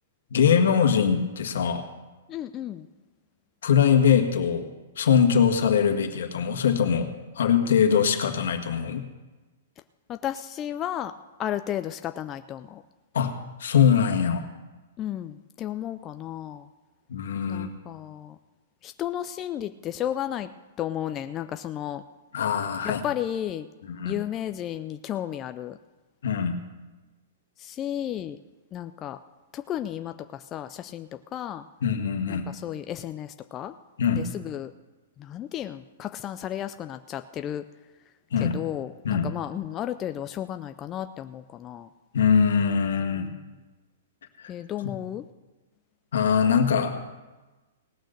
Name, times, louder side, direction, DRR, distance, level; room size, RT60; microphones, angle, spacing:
voice 1, 0.3-1.9 3.6-4.7 5.0-7.1 7.3-9.0 13.1-14.5 17.1-17.7 22.3-23.0 23.9-24.2 26.2-26.6 31.8-32.4 34.0-34.3 38.3-38.6 39.0-39.3 42.1-43.3 44.4-44.5 46.1-47.0, left 7 dB, 75° left, 5 dB, 1.6 m, -22 dB
voice 2, 2.3-2.9 10.1-11.1 11.4-12.8 15.0-16.7 17.5-18.4 18.8-20.5 20.8-22.0 22.8-23.7 24.0-25.8 27.6-28.4 28.7-29.2 29.5-31.6 32.3-33.8 34.2-34.7 35.2-37.6 38.4-41.9 43.1-43.4 44.5-45.2, left 11 dB, 20° left, 9 dB, 0.3 m, -33 dB
18.5 x 6.4 x 6.6 m, 1.2 s
hypercardioid pair, 170°, 0 cm